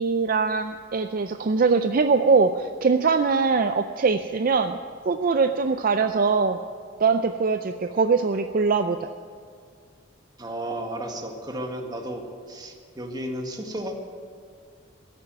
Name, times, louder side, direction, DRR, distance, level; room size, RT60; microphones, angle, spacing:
voice 1, 0.0-4.8 5.1-6.6 7.0-9.0, right 4 dB, 45° right, 8 dB, 0.5 m, -22 dB
voice 2, 10.4-13.9, right 1 dB, 20° right, 3 dB, 1.6 m, -33 dB
14.0 x 8.8 x 9.4 m, 2.1 s
head